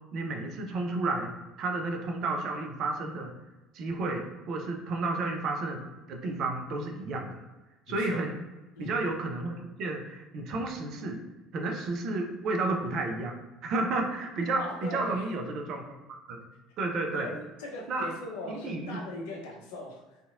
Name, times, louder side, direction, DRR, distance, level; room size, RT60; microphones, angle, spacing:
voice 1, 0.1-1.3 1.6-3.3 3.7-5.8 6.1-7.4 7.9-8.3 8.8-11.2 11.5-16.5 16.8-17.3 17.9-18.1 18.5-19.0, right 2 dB, 50° right, 3 dB, 0.4 m, -32 dB
voice 2, 7.9-8.2 8.8-8.9 14.6-15.3 17.1-20.2, left 2 dB, 65° left, 0 dB, 0.5 m, -40 dB
2.7 x 2.4 x 2.5 m, 1.1 s
figure-of-eight pair, 60°, 0 cm